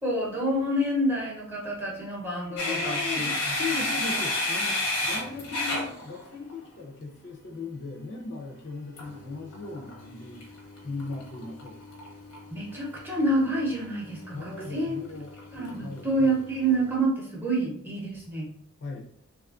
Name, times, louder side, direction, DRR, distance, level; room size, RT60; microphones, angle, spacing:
voice 1, 0.0-3.3 4.1-4.2 12.5-15.0 15.5-18.5, right 1 dB, 10° right, -4 dB, 0.7 m, -28 dB
sound 1, 2.6-6.6 9.0-17.0, left 1 dB, 85° left, 0.9 m, -33 dB
voice 2, 2.6-3.3 3.5-10.4 10.8-11.8 14.3-15.3 15.8-16.4 18.8-19.1, left 4 dB, 50° left, 1 dB, 0.5 m, -38 dB
3.1 x 2.4 x 2.3 m, 0.66 s
head